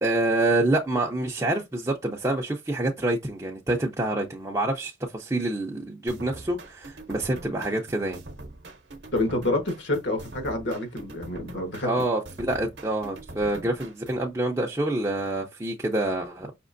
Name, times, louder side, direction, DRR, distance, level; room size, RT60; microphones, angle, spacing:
voice 1, 0.0-8.2 11.8-16.5, right 2 dB, 15° right, 0.5 m, -27 dB
sound 1, 6.1-14.3, right 2 dB, 60° right, 0.8 m, -43 dB
voice 2, 9.1-11.9, left 2 dB, 65° left, 1.3 m, -28 dB
5.1 x 2.9 x 2.5 m
head